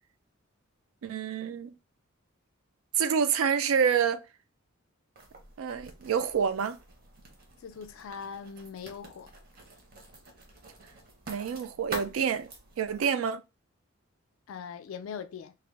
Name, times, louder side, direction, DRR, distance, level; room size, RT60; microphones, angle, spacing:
voice 1, 1.0-1.7 3.0-4.2 5.6-6.8 11.3-12.5 12.8-13.4, right 7 dB, 75° right, 0.4 m, -27 dB
Writing, 5.2-13.0, right 2 dB, 50° right, 0.8 m, -47 dB
voice 2, 7.6-9.3 14.5-15.6, left 6 dB, 75° left, 0.3 m, -41 dB
2.5 x 2.0 x 3.1 m
head